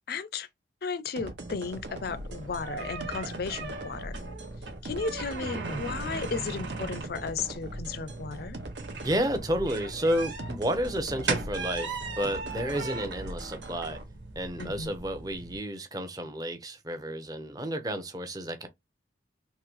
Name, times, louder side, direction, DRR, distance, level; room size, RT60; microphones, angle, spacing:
voice 1, 0.1-0.5 0.8-4.2 4.8-8.6 14.6-15.0, left 5 dB, 55° left, 0.4 m, -34 dB
sound 1, 1.2-14.0, right 2 dB, 70° right, 0.9 m, -42 dB
sound 2, 1.7-15.6, right 3 dB, 85° right, 1.7 m, -38 dB
voice 2, 9.0-14.0 14.4-18.7, equal, 20° right, 0.7 m, -31 dB
3.8 x 3.1 x 3.0 m
head